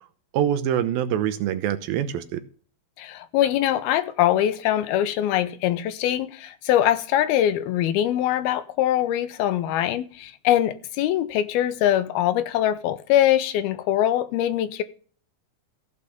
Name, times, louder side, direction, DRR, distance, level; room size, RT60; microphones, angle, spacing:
voice 1, 0.3-2.4, right 10 dB, 75° right, 2.4 m, -24 dB
voice 2, 3.0-14.8, left 12 dB, 80° left, 2.6 m, -23 dB
15.0 x 5.2 x 7.0 m
omnidirectional pair, 4.6 m